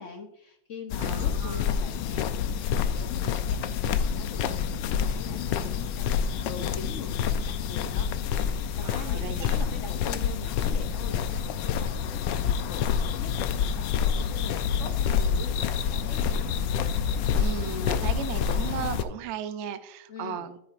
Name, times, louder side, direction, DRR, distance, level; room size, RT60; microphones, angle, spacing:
voice 1, 0.0-4.4 4.8-12.2 12.6-15.6 15.9-16.5 20.1-20.5, left 5 dB, 60° left, 4 dB, 0.9 m, -43 dB
sound 1, 0.9-19.0, left 7 dB, 80° left, 1.3 m, -27 dB
voice 2, 1.0-1.6 8.8-9.6 17.4-20.6, right 8 dB, 80° right, 11 dB, 0.6 m, -36 dB
10.0 x 9.0 x 2.5 m, 0.81 s
omnidirectional pair, 1.9 m